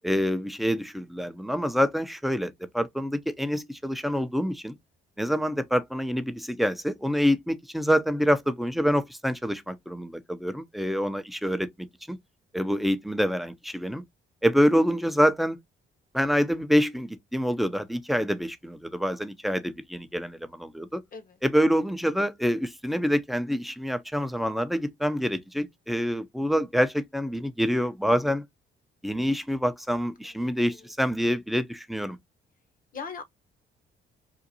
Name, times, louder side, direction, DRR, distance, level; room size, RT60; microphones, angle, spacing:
voice 1, 0.0-4.8 5.2-12.2 12.5-14.0 14.4-15.6 16.1-21.0 21.4-28.4 29.0-32.2, equal, ahead, 0.6 m, -26 dB
voice 2, 30.2-30.9 32.9-33.2, left 5 dB, 45° left, 1.0 m, -41 dB
3.7 x 2.5 x 2.7 m
cardioid pair, 90°, 20 cm